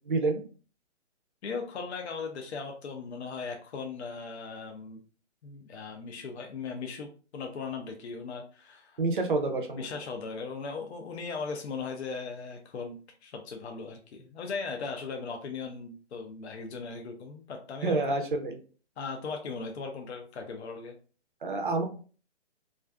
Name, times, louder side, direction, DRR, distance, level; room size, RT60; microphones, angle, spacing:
voice 1, 0.1-0.4 9.0-9.9 17.8-18.6 21.4-21.8, right 3 dB, 45° right, 5 dB, 0.4 m, -28 dB
voice 2, 1.4-5.0 5.4-9.0 9.8-18.0 19.0-21.0, left 4 dB, 65° left, 3 dB, 0.5 m, -38 dB
2.4 x 2.3 x 2.2 m, 0.39 s
hypercardioid pair, 175°, 36 cm